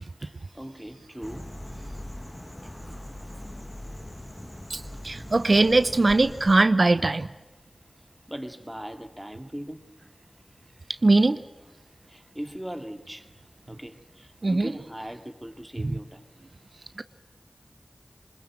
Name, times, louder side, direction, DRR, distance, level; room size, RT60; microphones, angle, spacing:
voice 1, 0.2-1.6 8.3-9.9 12.0-13.3 13.7-16.2, equal, 10° right, 7 dB, 2.3 m, -39 dB
sound 1, 1.2-6.6, left 1 dB, 20° left, 1.4 m, -40 dB
voice 2, 4.7-7.3 11.0-11.4 14.4-14.7 15.8-15.9 17.0-17.1, right 2 dB, 55° right, 12 dB, 0.8 m, -21 dB
24.5 x 21.5 x 7.6 m, 1.1 s
wide cardioid pair, 60°, 0 cm